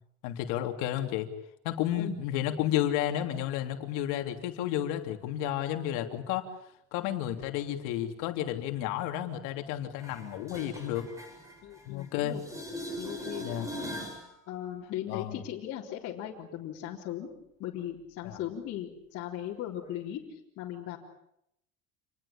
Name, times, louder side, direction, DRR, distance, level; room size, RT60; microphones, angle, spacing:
voice 1, 0.2-1.3 1.6-6.5 6.9-11.1 11.8-12.4 13.4-13.7 15.1-15.4 18.2-18.4, left 12 dB, 65° left, 5 dB, 3.2 m, -32 dB
sound 1, 10.0-12.1 12.3-14.2 20.0-20.1, equal, 10° right, 7.1 m, -40 dB
voice 2, 11.6-12.4 12.9-13.4 14.5-17.3 17.6-21.0, left 11 dB, 45° left, -5 dB, 3.9 m, -38 dB
28.5 x 20.5 x 8.8 m, 0.78 s
cardioid pair, 170°, 33 cm